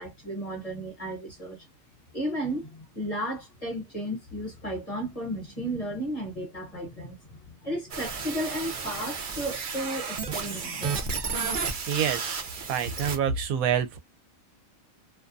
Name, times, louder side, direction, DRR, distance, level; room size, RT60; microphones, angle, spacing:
voice 1, 0.0-1.6 2.1-11.5, right 1 dB, 30° left, 1.0 m, -34 dB
sound 1, 7.9-13.2, right 5 dB, 50° right, 0.6 m, -32 dB
voice 2, 11.9-12.2 12.7-14.0, right 8 dB, 90° right, 1.0 m, -26 dB
2.6 x 2.2 x 2.5 m
omnidirectional pair, 1.4 m